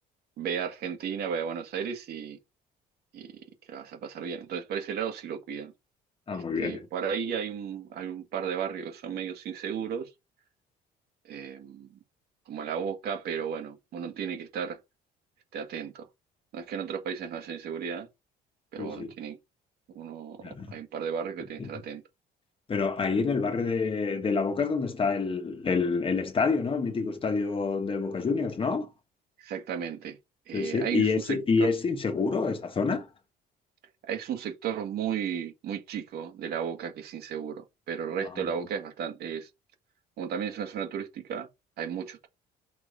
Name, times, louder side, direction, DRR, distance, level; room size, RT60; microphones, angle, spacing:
voice 1, 0.4-2.4 3.1-3.4 3.7-5.7 6.3-10.1 11.2-12.0 12.5-14.8 15.5-16.0 16.5-18.1 18.7-19.4 20.0-22.0 29.4-30.2 30.5-31.7 34.0-39.5 40.2-41.5 41.8-42.3, right 7 dB, 70° right, 1.8 m, -34 dB
voice 2, 6.3-6.9 18.8-19.1 20.4-20.7 21.6-21.7 22.7-28.9 30.5-33.1, left 4 dB, 30° left, 1.3 m, -27 dB
6.2 x 4.0 x 5.1 m
cardioid pair, 110°, 17 cm